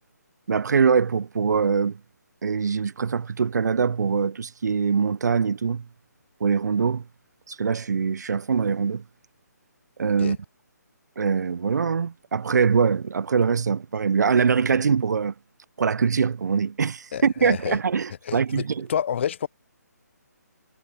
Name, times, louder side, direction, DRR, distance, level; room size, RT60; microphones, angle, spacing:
voice 1, 0.5-2.0 2.4-5.8 6.4-7.0 7.5-9.0 10.0-10.4 11.2-15.3 15.8-18.9, right 6 dB, 75° right, 0.4 m, -23 dB
voice 2, 17.1-17.8 18.2-19.5, left 8 dB, 40° left, 0.5 m, -29 dB
hypercardioid pair, 155°, 9 cm